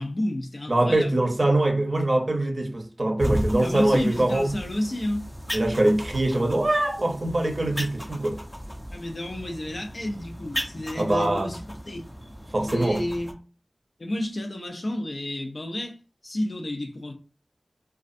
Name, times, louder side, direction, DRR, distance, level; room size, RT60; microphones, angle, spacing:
voice 1, 0.0-1.2 3.6-5.3 8.9-12.0 12.7-13.3 14.0-16.0 16.2-17.1, left 1 dB, 65° left, 0.5 m, -30 dB
voice 2, 0.7-4.5 5.5-8.4 11.0-11.5 12.5-13.0, right 1 dB, 55° right, 0.6 m, -23 dB
sound 1, 3.2-13.3, equal, 15° left, 0.5 m, -36 dB
2.5 x 2.3 x 2.5 m
wide cardioid pair, 40°, 0 cm